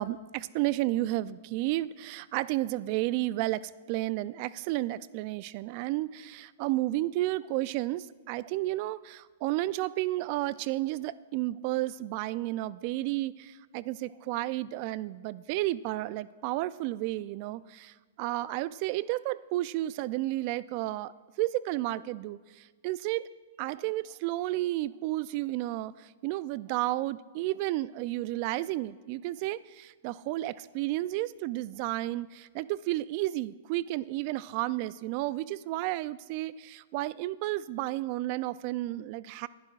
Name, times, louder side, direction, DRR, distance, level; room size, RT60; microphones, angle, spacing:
voice 1, 0.0-21.1 21.4-23.3 23.6-39.5, right 17 dB, 45° right, 18 dB, 0.4 m, -32 dB
25.5 x 11.0 x 2.4 m, 1.4 s
hypercardioid pair, 130°, 0 cm